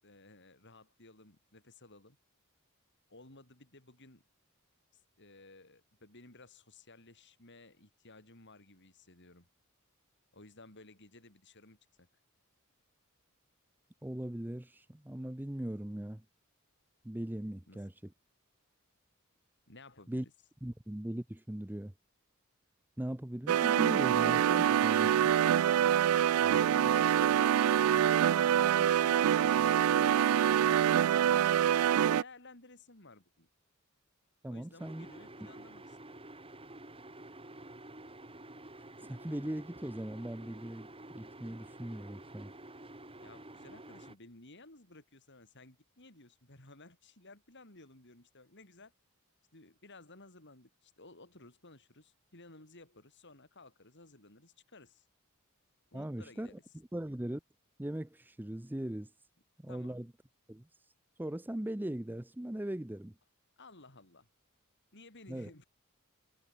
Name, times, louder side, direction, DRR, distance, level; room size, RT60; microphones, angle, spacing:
voice 1, 0.0-2.2 3.1-4.2 5.2-9.5 10.3-12.1 17.7-17.8 19.7-20.3 24.7-25.3 26.1-31.4 31.9-33.5 34.5-36.2 43.2-48.9 49.5-55.0 55.9-56.6 59.7-60.0 63.6-64.3 64.9-65.6, left 2 dB, 55° left, 6.9 m, -55 dB
voice 2, 14.0-16.2 17.0-18.1 20.1-20.3 20.6-21.9 23.0-25.1 26.4-26.6 34.4-35.1 39.1-42.5 55.9-57.4 57.8-59.1 59.6-60.1 60.5-60.7 61.2-63.1 65.3-65.5, right 1 dB, 10° right, 0.6 m, -39 dB
sound 1, 23.5-32.2, right 9 dB, 75° right, 0.3 m, -25 dB
sound 2, 34.8-44.1, right 1 dB, 25° right, 6.6 m, -50 dB
head